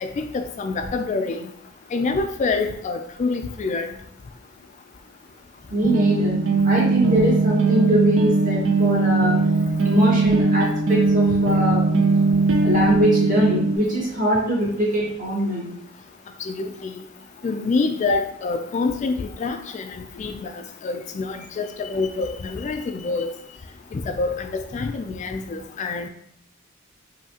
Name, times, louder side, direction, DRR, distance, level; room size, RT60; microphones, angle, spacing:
voice 1, 0.0-1.5 1.9-3.9 16.4-17.0 17.4-23.3 23.9-26.1, left 3 dB, 40° left, 6 dB, 0.3 m, -27 dB
voice 2, 5.7-9.4 9.8-11.8 12.6-15.7, equal, 45° right, -5 dB, 1.7 m, -22 dB
sound 1, 5.8-13.8, right 3 dB, 70° right, 0.5 m, -20 dB
5.6 x 2.7 x 2.8 m, 0.68 s
head